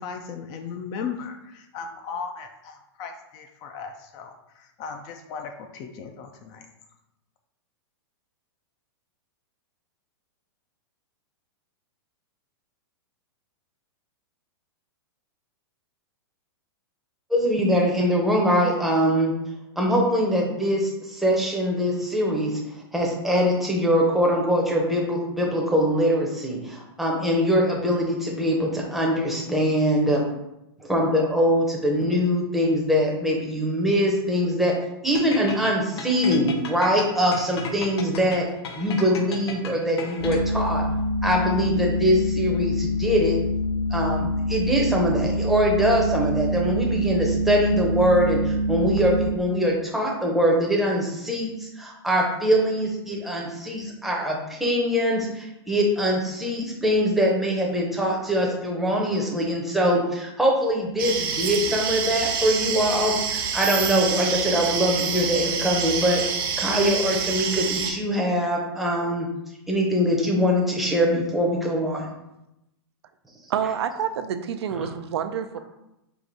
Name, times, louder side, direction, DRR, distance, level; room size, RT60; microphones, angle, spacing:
voice 1, 0.0-6.7, left 6 dB, 30° left, 6 dB, 0.3 m, -37 dB
voice 2, 17.3-19.3 19.8-22.6 22.9-30.2 30.8-34.7 35.0-38.5 38.8-40.8 41.2-43.4 43.9-66.2 66.6-69.3 69.7-72.1 74.8-74.9, equal, ahead, -2 dB, 0.7 m, -23 dB
sound 1, 35.1-40.7, left 5 dB, 75° left, 0.7 m, -36 dB
sound 2, 40.2-49.3, equal, 60° left, 1.1 m, -25 dB
sound 3, 61.0-67.9, right 6 dB, 55° right, 0.8 m, -27 dB
voice 3, 73.5-75.6, right 8 dB, 80° right, 9 dB, 0.4 m, -28 dB
4.8 x 2.5 x 3.9 m, 0.88 s
hypercardioid pair, 150°, 14 cm